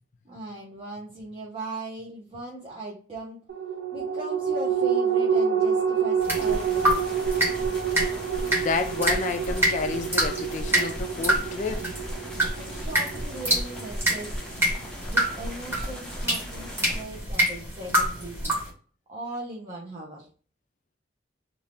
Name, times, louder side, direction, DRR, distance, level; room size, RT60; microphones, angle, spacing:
voice 1, 0.2-3.4 3.9-7.1 12.5-14.4 15.1-18.5 19.1-20.3, right 1 dB, 30° right, 0.7 m, -38 dB
sound 1, 3.5-14.3 14.7-14.8, right 7 dB, 65° right, 0.6 m, -28 dB
sound 2, 6.2-18.7, equal, 15° right, 1.4 m, -28 dB
sound 3, 6.3-17.0, left 1 dB, 5° left, 0.6 m, -42 dB
voice 2, 8.6-11.9, left 4 dB, 40° left, 0.3 m, -30 dB
2.7 x 2.4 x 3.4 m
head